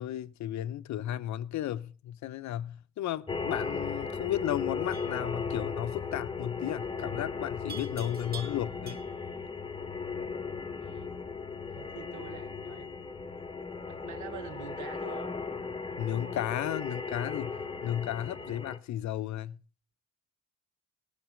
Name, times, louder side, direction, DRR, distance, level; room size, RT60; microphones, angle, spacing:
voice 1, 0.0-9.0 16.0-19.6, left 12 dB, 70° left, 0.7 m, -34 dB
sound 1, 3.3-18.8, left 5 dB, 15° left, 0.8 m, -37 dB
Livestock farm animals working animals, 4.9-5.2 7.7-9.3, right 5 dB, 30° right, 2.0 m, -46 dB
voice 2, 10.8-11.1 11.7-12.9 13.8-15.3 18.4-18.6, right 8 dB, 75° right, 1.0 m, -46 dB
17.5 x 6.6 x 4.9 m
cardioid pair, 90°, 30 cm